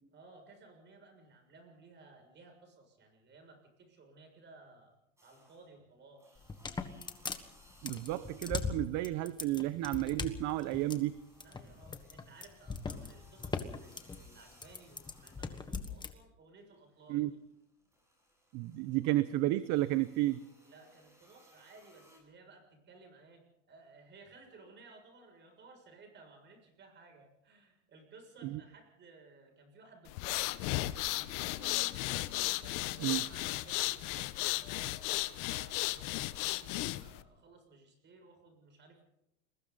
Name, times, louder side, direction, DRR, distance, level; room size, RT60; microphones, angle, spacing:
voice 1, 0.1-4.9 5.2-6.5 11.4-17.4 20.6-30.8 31.1-32.0 32.6-39.0, right 3 dB, 30° right, 4 dB, 6.8 m, -58 dB
sound 1, 5.2-5.8 6.2-9.1 9.4-16.1 16.5-22.2, equal, 5° right, 7.5 m, -64 dB
sound 2, 6.4-16.1, left 5 dB, 10° left, 1.4 m, -40 dB
voice 2, 7.8-11.1 17.1-17.3 18.5-20.4 28.4-28.6 33.0-33.2, right 16 dB, 45° right, 14 dB, 0.8 m, -32 dB
sound 3, 30.1-37.2, left 18 dB, 55° left, 1.1 m, -35 dB
29.5 x 21.5 x 4.1 m, 0.82 s
supercardioid pair, 145°, 39 cm